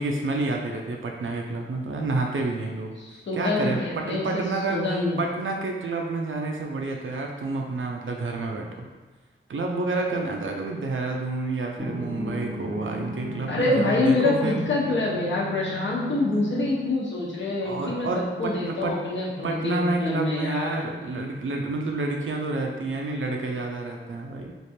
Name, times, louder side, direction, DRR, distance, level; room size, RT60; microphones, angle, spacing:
voice 1, 0.0-2.9 3.3-4.9 5.2-8.8 9.5-14.6 17.6-19.0 19.4-24.5, right 3 dB, 80° right, 1 dB, 0.6 m, -29 dB
voice 2, 3.0-4.3 4.7-5.2 13.5-20.8, left 2 dB, 65° left, -5 dB, 1.0 m, -26 dB
sound 1, 11.8-16.8, equal, 5° left, 0.7 m, -36 dB
3.3 x 2.4 x 4.3 m, 1.3 s
wide cardioid pair, 80°, 20 cm